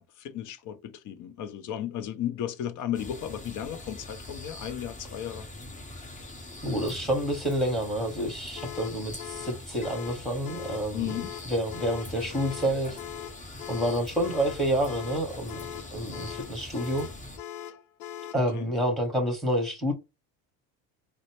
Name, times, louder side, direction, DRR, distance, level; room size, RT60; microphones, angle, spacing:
voice 1, 0.0-5.5 10.9-11.3 18.5-18.7, left 10 dB, 45° left, 0.6 m, -34 dB
sound 1, 2.9-17.4, left 2 dB, 20° left, 1.2 m, -43 dB
voice 2, 6.6-11.1 11.5-13.0 13.7-15.6 15.9-17.1 18.3-19.9, equal, ahead, 1.9 m, -28 dB
sound 2, 8.6-18.5, left 11 dB, 90° left, 0.5 m, -41 dB
3.9 x 2.1 x 3.1 m
supercardioid pair, 95°, 42 cm